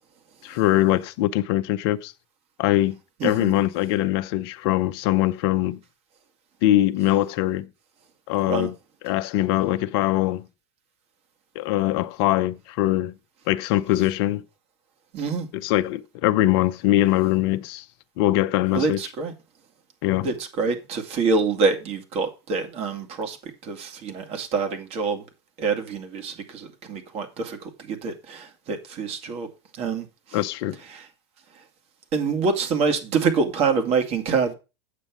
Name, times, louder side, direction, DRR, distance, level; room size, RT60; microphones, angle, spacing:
voice 1, 0.4-2.1 2.6-3.0 3.2-5.8 6.6-7.7 8.3-8.7 9.0-10.4 11.5-13.1 13.5-14.4 15.5-17.8 18.2-19.0 20.0-20.3 30.3-30.8, left 15 dB, 55° left, 0.7 m, -22 dB
voice 2, 3.2-3.5 8.4-8.7 15.1-15.5 18.7-19.3 20.2-25.2 25.6-30.4 30.9-31.1 32.1-34.5, right 4 dB, 45° right, 2.3 m, -26 dB
8.4 x 7.1 x 4.9 m
hypercardioid pair, 95°, 14 cm